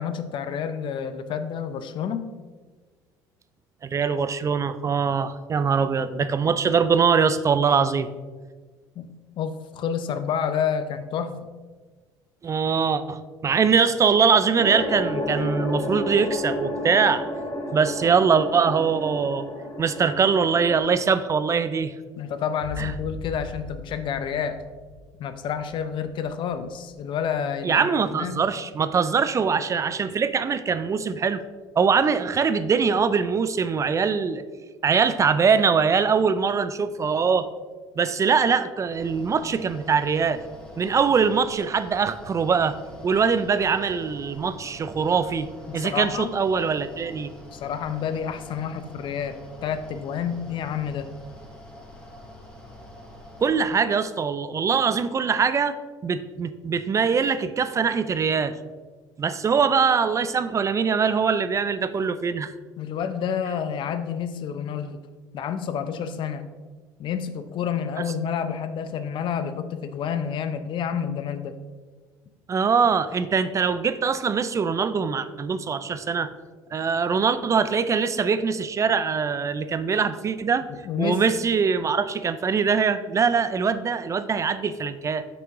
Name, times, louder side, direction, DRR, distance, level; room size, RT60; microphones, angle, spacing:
voice 1, 0.0-2.3 9.0-11.5 22.2-24.6 25.2-28.4 45.7-46.3 47.5-51.1 62.8-65.0 65.3-66.5 67.0-71.6 80.7-81.2, left 7 dB, 55° left, 10 dB, 0.6 m, -29 dB
voice 2, 3.8-8.1 12.4-17.2 17.7-19.5 19.8-21.9 22.8-22.9 27.6-31.4 31.8-34.4 34.8-37.5 38.0-40.4 40.8-42.8 43.0-45.5 45.7-47.3 53.4-55.8 56.0-58.5 59.2-62.5 72.5-76.3 76.7-80.6 81.0-85.3, right 6 dB, 30° right, 13 dB, 0.4 m, -22 dB
sound 1, 14.6-20.8, left 1 dB, 35° left, 1.5 m, -31 dB
sound 2, 22.6-30.0, left 1 dB, 75° left, 2.0 m, -42 dB
Mechanical fan, 38.9-53.5, left 1 dB, 10° left, 2.0 m, -45 dB
6.1 x 5.9 x 3.6 m, 1.4 s
supercardioid pair, 80°, 10 cm